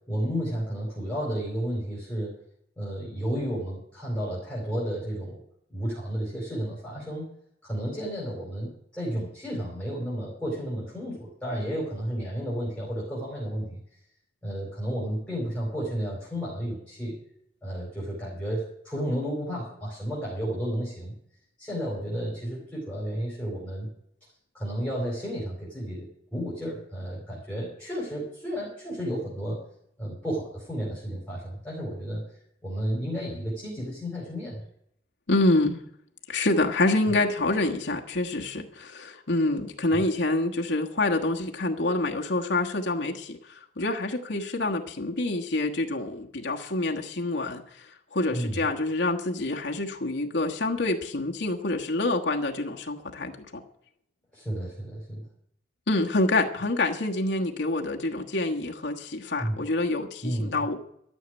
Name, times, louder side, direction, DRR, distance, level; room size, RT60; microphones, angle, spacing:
voice 1, 0.1-2.3 2.8-5.4 5.7-7.3 7.6-13.8 14.4-17.2 17.6-21.1 21.6-23.9 24.5-29.6 30.0-34.6 39.9-40.1 48.3-48.7 54.3-55.2 59.4-59.6 60.2-60.7, equal, 5° left, -5 dB, 4.3 m, -32 dB
voice 2, 35.3-35.8 36.3-53.6 55.9-60.8, left 2 dB, 90° left, 2 dB, 1.3 m, -27 dB
13.0 x 6.5 x 10.0 m, 0.71 s
head